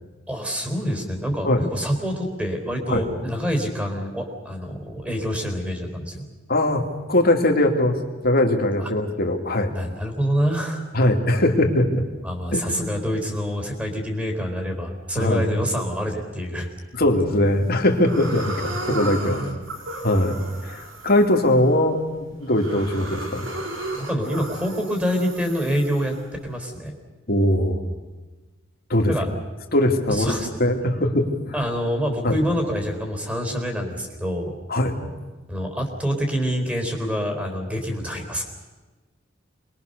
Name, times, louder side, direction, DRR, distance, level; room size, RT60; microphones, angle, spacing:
voice 1, 0.3-6.3 8.8-8.9 9.7-10.8 12.2-16.7 18.9-19.6 23.9-26.1 26.4-26.9 29.1-29.3 30.1-30.5 31.5-34.5 35.5-38.4, equal, 5° right, 4 dB, 4.1 m, -26 dB
voice 2, 6.5-8.0 8.2-9.7 10.9-12.0 12.5-13.0 15.1-15.5 16.9-19.4 20.0-20.4 20.6-22.0 22.3-23.5 27.3-27.8 28.9-29.1 29.7-31.5 32.2-32.3 34.7-35.0, left 1 dB, 50° left, 2 dB, 2.7 m, -21 dB
sound 1, 17.3-17.7 18.0-26.7, right 2 dB, 85° right, 3.2 m, -35 dB
28.0 x 21.5 x 6.8 m, 1.2 s
head